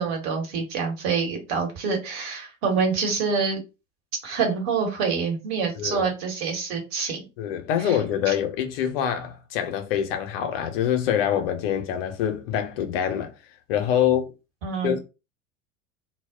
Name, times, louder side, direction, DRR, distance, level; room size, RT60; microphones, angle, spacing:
voice 1, 0.0-3.6 4.2-7.3 7.8-8.0 8.3-8.4 14.6-14.9, right 5 dB, 50° right, 1.1 m, -26 dB
voice 2, 5.8-6.1 7.4-13.3 13.7-14.3 14.8-15.0, left 9 dB, 45° left, 0.6 m, -25 dB
2.1 x 2.0 x 3.5 m
figure-of-eight pair, 75°, 40 cm